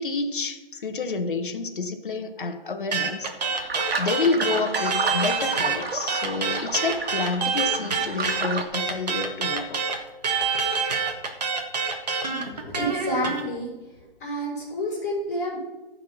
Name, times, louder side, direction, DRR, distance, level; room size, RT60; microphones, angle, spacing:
voice 1, 0.0-3.3 4.0-9.8, left 4 dB, 60° left, 7 dB, 1.4 m, -28 dB
sound 1, 2.9-5.8 6.1-13.4, right 5 dB, 45° right, 1.6 m, -26 dB
sound 2, 3.4-8.6, right 4 dB, 85° right, 2.1 m, -32 dB
voice 2, 12.6-13.7 14.2-15.6, equal, 15° left, -8 dB, 3.9 m, -29 dB
14.5 x 4.9 x 6.2 m, 1.1 s
hypercardioid pair, 180°, 29 cm